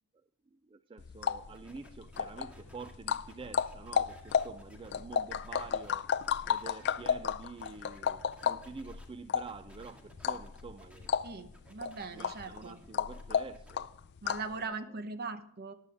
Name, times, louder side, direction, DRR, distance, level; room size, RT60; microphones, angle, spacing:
voice 1, 0.5-6.1 6.5-11.1 12.1-13.9 14.5-14.8, right 4 dB, 25° right, 12 dB, 0.3 m, -48 dB
sound 1, 1.0-14.6, left 7 dB, 50° left, 0.4 m, -34 dB
sound 2, 1.5-9.0 9.4-11.1 11.4-13.7, equal, 5° right, 1.9 m, -59 dB
voice 2, 11.2-12.8 14.2-15.7, right 4 dB, 45° right, 10 dB, 1.0 m, -40 dB
14.5 x 10.5 x 3.4 m, 0.75 s
head